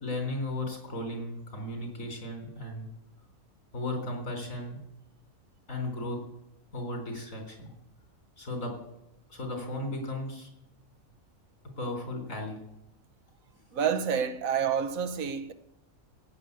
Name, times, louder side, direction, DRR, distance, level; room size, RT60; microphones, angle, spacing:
voice 1, 0.0-2.9 3.7-4.8 5.7-6.2 6.7-7.7 8.4-8.7 9.3-10.5 11.8-12.6, left 1 dB, 80° left, 4.2 m, -35 dB
voice 2, 13.7-15.5, right 7 dB, 90° right, 1.4 m, -28 dB
16.0 x 7.7 x 8.3 m
omnidirectional pair, 1.4 m